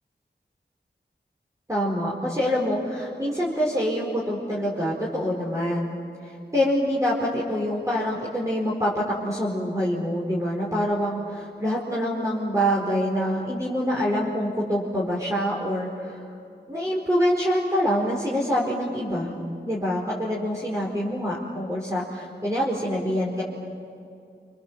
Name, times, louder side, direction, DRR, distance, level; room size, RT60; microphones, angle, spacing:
voice 1, 1.7-6.0 6.5-16.2 16.7-19.3 19.6-23.4, equal, 15° right, -5 dB, 4.7 m, -25 dB
29.0 x 27.0 x 7.6 m, 2.6 s
wide cardioid pair, 55°, 19 cm